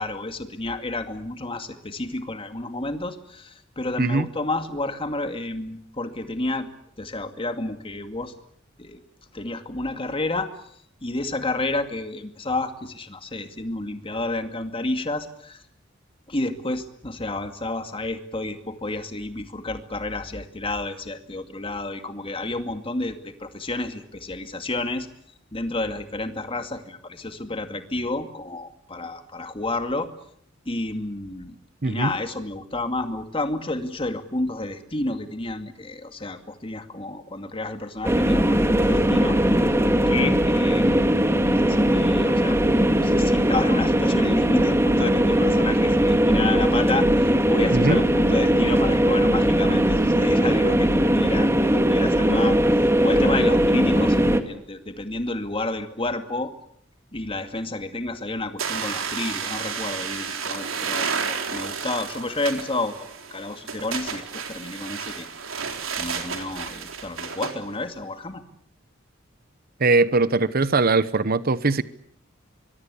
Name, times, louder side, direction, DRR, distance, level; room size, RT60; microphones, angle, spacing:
voice 1, 0.0-6.7 7.0-8.3 8.8-9.0 9.3-10.5 11.0-15.6 16.3-25.1 25.5-30.1 30.7-31.5 31.8-39.4 40.0-41.2 41.7-42.6 43.0-47.1 47.5-56.5 57.1-65.3 66.0-68.4, left 2 dB, 25° left, 2.3 m, -30 dB
voice 2, 31.8-32.1 47.7-48.0 69.8-71.8, right 3 dB, 50° right, 1.0 m, -21 dB
sound 1, 38.0-54.4, equal, 15° right, 1.9 m, -19 dB
sound 2, 58.6-67.6, right 6 dB, 90° right, 3.8 m, -31 dB
24.5 x 23.0 x 8.4 m
head